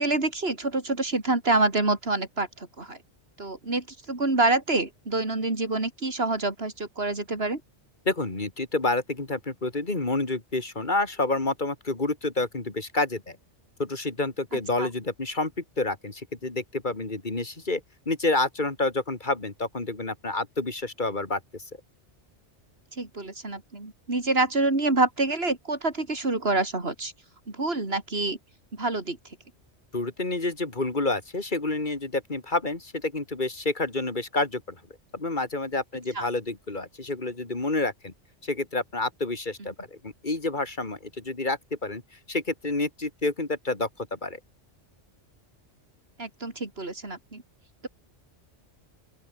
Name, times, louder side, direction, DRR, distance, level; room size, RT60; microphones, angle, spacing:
voice 1, 0.0-3.0 3.4-7.6 14.8-14.9 23.0-27.1 27.5-28.4 28.7-29.2 36.1-36.3 39.6-39.7 46.2-47.4, right 2 dB, 60° right, 4.1 m, -27 dB
voice 2, 8.1-13.4 13.8-21.6 29.9-34.8 35.1-38.1 38.4-42.0 42.3-44.4, left 2 dB, 45° left, 2.9 m, -29 dB
open air
omnidirectional pair, 1.2 m